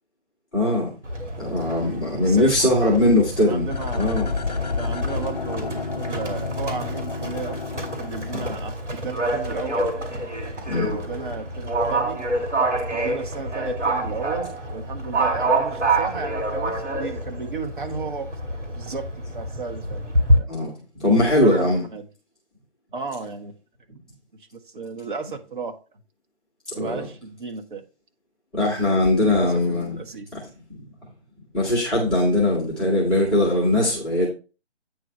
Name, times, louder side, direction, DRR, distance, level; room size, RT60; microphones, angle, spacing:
voice 1, 0.5-0.9 1.4-3.7 3.9-4.3 8.3-8.4 10.7-10.9 20.5-21.8 26.8-27.0 28.5-30.0 31.5-34.3, left 1 dB, ahead, -9 dB, 0.8 m, -20 dB
Livestock farm animals working animals, 1.0-20.4, right 1 dB, 80° right, 2.8 m, -27 dB
voice 2, 2.1-2.5 2.8-3.0 3.4-4.1 4.7-9.9 10.8-12.2 12.9-18.3 18.7-20.0 20.4-20.5 21.1-22.0 22.9-23.6 23.9-24.0 24.5-25.8 26.7-27.8 29.2-30.3, right 4 dB, 45° right, 5 dB, 1.3 m, -34 dB
sound 1, 3.7-8.9 9.2-9.3, left 4 dB, 40° left, 0.4 m, -30 dB
8.8 x 3.2 x 5.5 m, 0.33 s
figure-of-eight pair, 145°, 35 cm